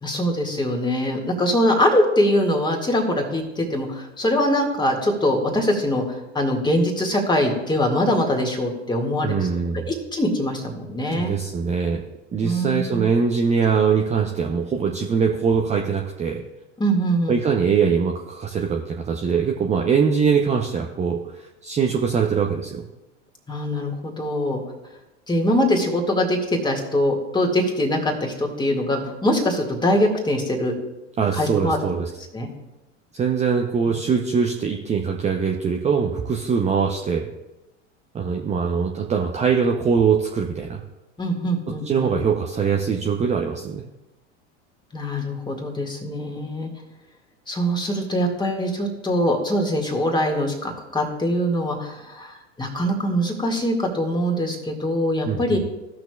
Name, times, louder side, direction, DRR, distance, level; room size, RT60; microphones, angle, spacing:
voice 1, 0.0-9.5 9.9-11.3 12.4-13.1 16.8-17.4 23.5-24.6 25.3-30.7 31.3-31.8 32.3-32.5 41.2-42.1 44.9-46.7 47.5-55.6, equal, 10° left, 1 dB, 1.9 m, -23 dB
voice 2, 9.2-9.9 11.1-12.0 12.3-16.4 17.3-22.8 31.2-32.1 33.1-37.3 38.1-40.8 41.8-43.8 55.3-55.7, right 6 dB, 20° right, 1 dB, 0.7 m, -22 dB
16.0 x 6.0 x 2.3 m, 0.99 s
figure-of-eight pair, 85°, 37 cm